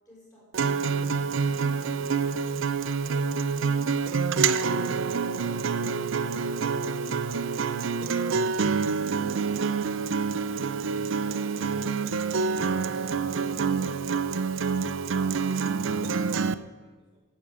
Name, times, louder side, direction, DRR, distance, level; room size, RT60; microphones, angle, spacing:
voice 1, 0.0-0.1, equal, 15° left, -5 dB, 5.5 m, -51 dB
Acoustic guitar, 0.5-16.5, right 5 dB, 65° right, 0.5 m, -27 dB
voice 2, 14.9-15.0, right 1 dB, 20° right, -2 dB, 1.6 m, -62 dB
11.5 x 8.9 x 8.1 m, 1.4 s
head